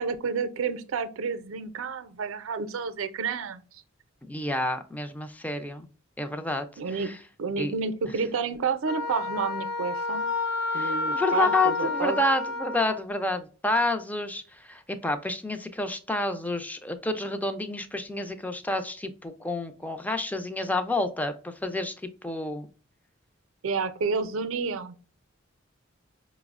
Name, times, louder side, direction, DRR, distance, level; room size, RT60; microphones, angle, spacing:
voice 1, 0.0-3.6 6.8-7.1 7.4-10.3 10.7-12.2 23.6-24.9, right 5 dB, 85° right, 0.5 m, -30 dB
voice 2, 4.2-5.9 6.2-7.2 7.6-7.7 10.7-21.9 22.2-22.7, left 2 dB, 10° left, 0.4 m, -29 dB
Wind instrument woodwind instrument, 8.9-13.0, left 3 dB, 55° left, 0.6 m, -30 dB
5.2 x 2.0 x 2.4 m
head